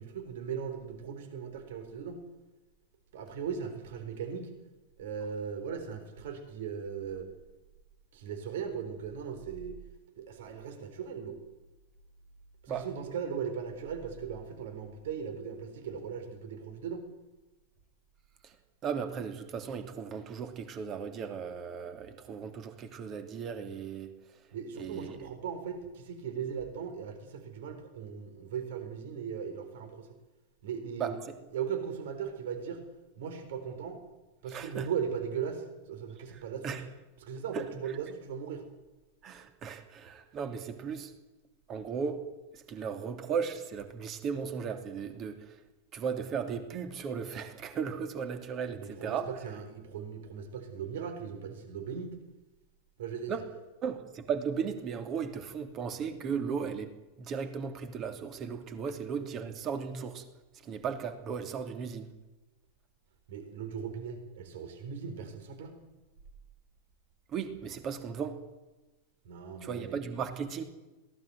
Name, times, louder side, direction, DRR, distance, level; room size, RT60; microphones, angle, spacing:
voice 1, 0.0-2.2 3.1-4.5 5.0-7.3 8.1-9.8 10.2-11.4 12.6-17.1 24.5-30.1 30.6-31.1 31.5-32.8 33.2-34.0 34.4-36.8 37.2-38.7 48.7-52.2 53.0-53.4 63.3-65.8 69.2-70.0, right 7 dB, 55° right, 8 dB, 3.9 m, -38 dB
voice 2, 18.8-24.1 24.7-25.2 31.0-31.3 34.5-34.9 36.3-36.8 37.5-37.7 39.2-41.1 41.7-42.2 42.5-45.6 45.9-49.3 53.3-53.4 53.8-56.9 57.2-60.2 60.6-62.1 67.3-68.4 69.6-70.6, right 6 dB, 30° right, 8 dB, 3.0 m, -36 dB
22.0 x 17.5 x 7.8 m, 1.1 s
figure-of-eight pair, 90°, 0 cm